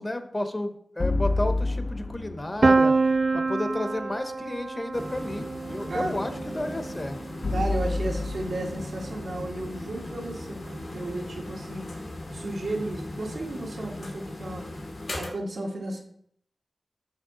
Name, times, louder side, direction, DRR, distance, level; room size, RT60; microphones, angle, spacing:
voice 1, 0.0-3.0 3.3-7.2, left 1 dB, 30° left, 8 dB, 0.7 m, -32 dB
sound 1, 1.0-3.2 7.4-10.7, left 2 dB, 60° left, 0.4 m, -30 dB
Piano, 2.6-8.4, right 3 dB, 55° right, 0.3 m, -27 dB
sound 2, 4.9-15.3, left 1 dB, 85° left, 1.6 m, -38 dB
voice 2, 5.9-6.2 7.5-12.0 12.3-14.7 15.2-16.0, right 2 dB, 90° right, -2 dB, 1.5 m, -33 dB
6.4 x 5.2 x 3.8 m, 0.67 s
wide cardioid pair, 65°, 0 cm